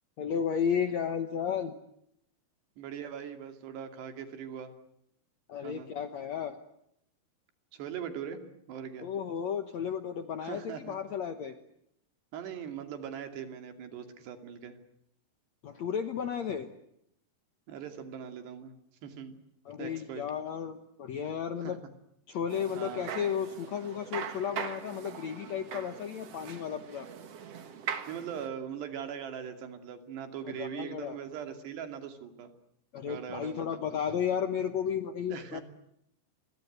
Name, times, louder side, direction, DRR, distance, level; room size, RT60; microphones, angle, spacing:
voice 1, 0.2-1.7 5.5-6.6 9.0-11.6 15.6-16.7 19.7-21.8 22.3-27.1 30.5-31.2 32.9-35.6, left 7 dB, 65° left, 9 dB, 1.8 m, -33 dB
voice 2, 2.8-4.7 5.6-5.9 7.7-8.4 8.7-9.1 10.4-11.0 12.3-14.8 17.7-18.7 19.0-19.3 19.8-20.2 21.6-21.8 22.8-23.1 28.1-32.5 33.1-33.7 35.3-35.6, right 8 dB, 85° right, 7 dB, 4.7 m, -40 dB
sound 1, 22.5-28.5, right 7 dB, 50° right, 2.2 m, -41 dB
29.0 x 23.5 x 8.0 m, 0.75 s
omnidirectional pair, 4.7 m